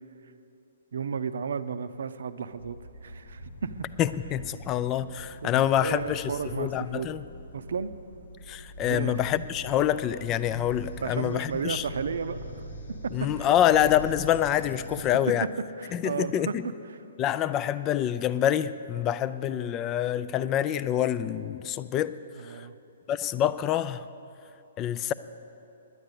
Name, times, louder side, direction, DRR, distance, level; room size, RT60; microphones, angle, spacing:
voice 1, 0.9-3.9 5.4-7.1 7.5-7.9 8.8-9.2 11.0-12.4 13.0-13.5 15.4-15.5 15.8-16.6 22.4-22.8, right 6 dB, 75° right, 12 dB, 0.5 m, -33 dB
sound 1, 2.5-15.2, equal, 85° left, 2.0 m, -42 dB
voice 2, 4.0-7.2 8.5-11.9 13.1-15.5 15.9-16.6 17.2-22.1 22.5-22.7 23.1-24.1 24.8-25.1, left 11 dB, 20° left, 15 dB, 0.3 m, -26 dB
10.5 x 9.0 x 8.2 m, 2.9 s
hypercardioid pair, 160°, 0 cm